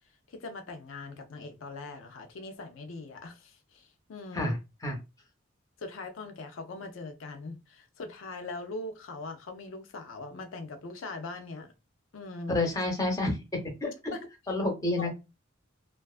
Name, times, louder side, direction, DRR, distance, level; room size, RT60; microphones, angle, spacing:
voice 1, 0.3-4.6 5.8-11.7 12.1-12.6 14.1-14.3 15.0-15.1, left 3 dB, 80° left, 0.4 m, -41 dB
voice 2, 12.5-13.4 13.8-14.1 14.5-15.1, left 2 dB, 15° left, 0.7 m, -29 dB
2.5 x 2.3 x 2.4 m
head